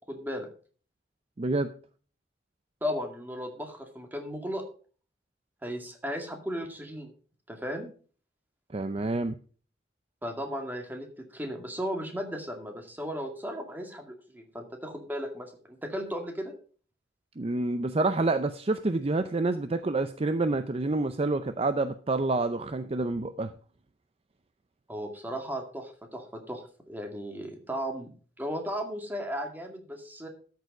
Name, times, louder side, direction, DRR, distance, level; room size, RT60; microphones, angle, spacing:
voice 1, 0.1-0.5 2.8-4.6 5.6-7.1 7.5-7.9 10.2-11.1 11.3-16.5 24.9-30.3, equal, 10° right, 3 dB, 2.1 m, -36 dB
voice 2, 1.4-1.7 8.7-9.4 17.4-23.5, right 2 dB, 35° right, 11 dB, 0.5 m, -28 dB
13.0 x 6.8 x 4.9 m, 0.40 s
head